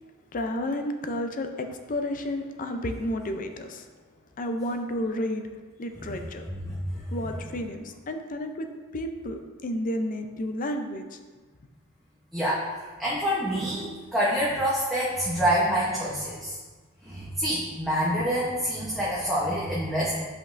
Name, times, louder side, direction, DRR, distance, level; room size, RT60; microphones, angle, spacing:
voice 1, 0.3-3.9 4.4-5.4 5.8-6.4 7.1-8.7 8.9-11.2, left 1 dB, 40° left, 6 dB, 0.5 m, -31 dB
voice 2, 6.5-7.0 12.3-12.7 13.0-16.6 17.0-20.2, equal, ahead, -8 dB, 0.9 m, -27 dB
8.3 x 5.2 x 2.6 m, 1.4 s
head